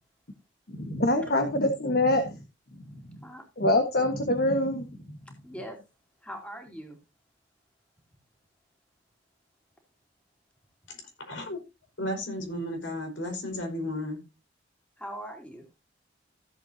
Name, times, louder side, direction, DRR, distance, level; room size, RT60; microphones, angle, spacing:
voice 1, 0.7-2.4 3.6-4.9, left 1 dB, 55° left, 6 dB, 1.4 m, -25 dB
voice 2, 5.4-5.8 6.2-7.0 15.0-15.8, equal, 5° left, 2 dB, 2.8 m, -41 dB
voice 3, 10.9-11.6 12.0-14.2, left 1 dB, 85° left, 4 dB, 4.7 m, -34 dB
15.0 x 7.9 x 2.7 m, 0.26 s
head